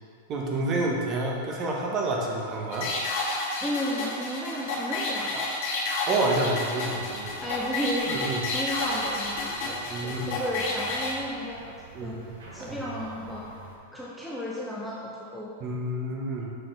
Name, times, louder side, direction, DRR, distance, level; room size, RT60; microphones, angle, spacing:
voice 1, 0.3-2.9 6.1-7.3 8.1-8.4 9.9-10.4 11.9-12.3 12.6-13.0 15.6-16.5, right 2 dB, 25° right, -1 dB, 0.9 m, -29 dB
sound 1, 2.7-11.1, left 2 dB, 50° left, 1.5 m, -31 dB
voice 2, 3.6-5.5 7.4-11.7 12.0-13.6 13.9-15.5, equal, ahead, -6 dB, 0.5 m, -34 dB
sound 2, 6.9-13.8, right 3 dB, 85° right, 1.4 m, -48 dB
6.6 x 4.3 x 3.9 m, 2.3 s
supercardioid pair, 160°, 0 cm